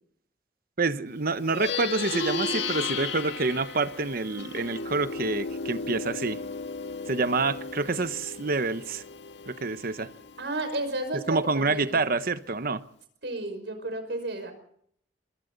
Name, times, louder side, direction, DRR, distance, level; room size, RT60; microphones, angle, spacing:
voice 1, 0.8-6.4 7.1-9.0 9.5-10.1 11.3-12.8, right 3 dB, 55° right, 1.1 m, -27 dB
Plucked string instrument, 1.4-11.1, left 4 dB, 75° left, 1.9 m, -35 dB
voice 2, 10.4-12.0 13.2-14.5, right 2 dB, 75° right, 5.6 m, -32 dB
26.5 x 24.5 x 4.1 m
head